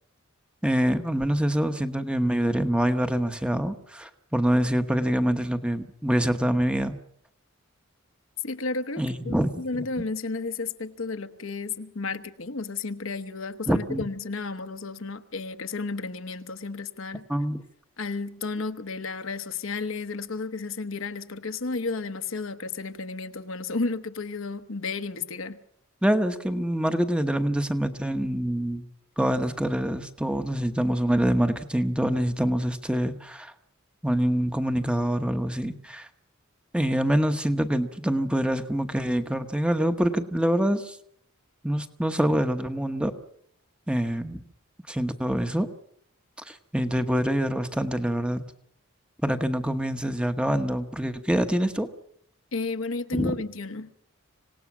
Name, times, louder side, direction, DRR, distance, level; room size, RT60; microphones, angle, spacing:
voice 1, 0.6-7.0 9.0-9.8 13.7-14.0 17.3-17.6 26.0-28.9 29.2-33.5 34.0-36.1 36.7-41.0 41.6-43.1 43.9-44.4 44.9-45.7 46.4-48.4 49.2-51.9 53.1-53.3, equal, 5° right, 1.0 m, -25 dB
voice 2, 8.4-17.3 18.0-25.6 52.5-53.9, left 3 dB, 70° left, 1.1 m, -32 dB
26.0 x 18.0 x 6.1 m
head